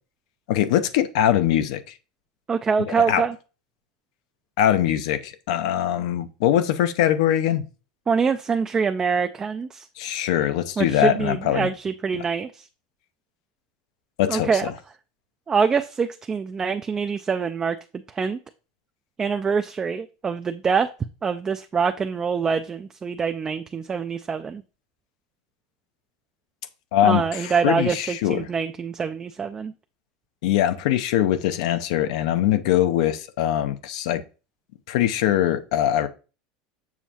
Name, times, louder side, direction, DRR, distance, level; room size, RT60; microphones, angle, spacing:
voice 1, 0.5-1.8 2.9-3.2 4.6-7.7 10.0-11.7 14.2-14.7 26.9-28.5 30.4-34.2 34.9-36.1, left 11 dB, 75° left, 0.6 m, -22 dB
voice 2, 2.5-3.3 8.1-9.9 10.8-12.6 14.3-14.7 15.5-17.8 18.1-18.4 19.2-20.9 21.2-24.6 27.0-29.7, right 5 dB, 20° right, 0.3 m, -25 dB
7.2 x 6.1 x 2.8 m
supercardioid pair, 135°, 4 cm